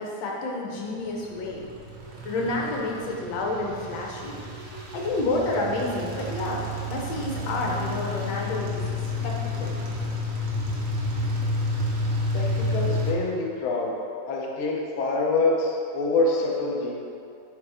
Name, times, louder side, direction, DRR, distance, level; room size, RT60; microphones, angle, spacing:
voice 1, 0.0-1.7 2.2-4.4 4.9-8.8 9.2-9.8, left 2 dB, 65° left, -2 dB, 1.8 m, -29 dB
sound 1, 1.2-13.1, left 1 dB, 80° right, 1.0 m, -30 dB
voice 2, 12.3-13.9 14.3-16.9, left 3 dB, 85° left, -2 dB, 1.1 m, -25 dB
9.3 x 3.5 x 4.8 m, 2.5 s
omnidirectional pair, 3.6 m